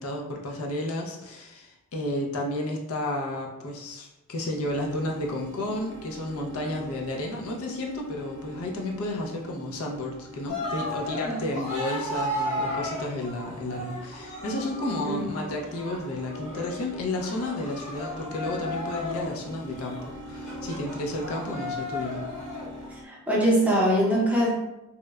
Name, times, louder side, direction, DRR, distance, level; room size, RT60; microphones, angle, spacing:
voice 1, 0.0-22.2, left 1 dB, 75° left, -1 dB, 0.5 m, -32 dB
sound 1, 4.6-23.0, equal, 60° right, 0.4 m, -44 dB
Cheering, 10.5-22.9, left 1 dB, 35° left, 0.9 m, -35 dB
voice 2, 23.0-24.5, equal, 5° right, -5 dB, 0.5 m, -23 dB
2.9 x 2.1 x 2.3 m, 0.95 s
head